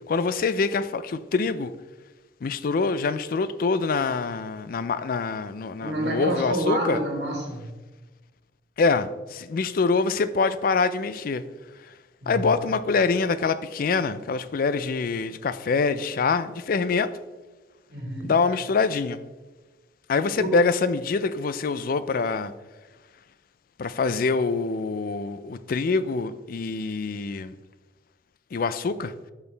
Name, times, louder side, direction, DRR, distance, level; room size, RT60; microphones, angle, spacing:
voice 1, 0.1-1.7 2.4-7.0 8.8-11.4 12.3-17.1 18.2-19.2 20.1-22.5 23.8-27.5 28.5-29.1, left 4 dB, 55° left, 14 dB, 0.4 m, -25 dB
voice 2, 5.8-7.7 12.2-12.5 17.9-18.3 20.4-20.6, right 1 dB, 70° right, 0 dB, 1.6 m, -28 dB
12.0 x 4.6 x 3.3 m, 1.2 s
head